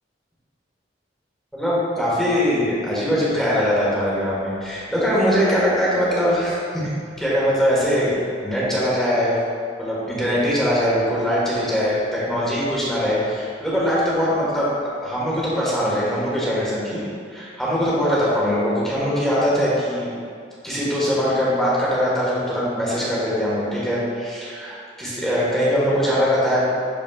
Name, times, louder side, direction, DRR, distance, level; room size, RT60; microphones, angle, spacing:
voice 1, 1.5-6.9 7.2-8.2 8.4-9.4 9.8-14.7 15.0-17.0 17.3-20.1 20.6-26.6, equal, ahead, -8 dB, 1.3 m, -21 dB
11.0 x 4.1 x 2.3 m, 2.3 s
head